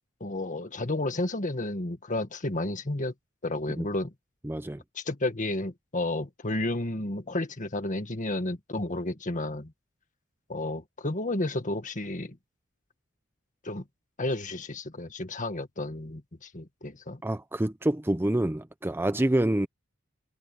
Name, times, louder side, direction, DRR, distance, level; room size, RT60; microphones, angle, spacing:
voice 1, 0.2-3.1 3.4-4.1 5.0-9.7 10.5-12.4 13.6-13.8 14.2-17.2, left 2 dB, 40° left, 1.7 m, -32 dB
voice 2, 4.4-4.8 17.2-19.7, right 1 dB, 10° right, 0.5 m, -27 dB
head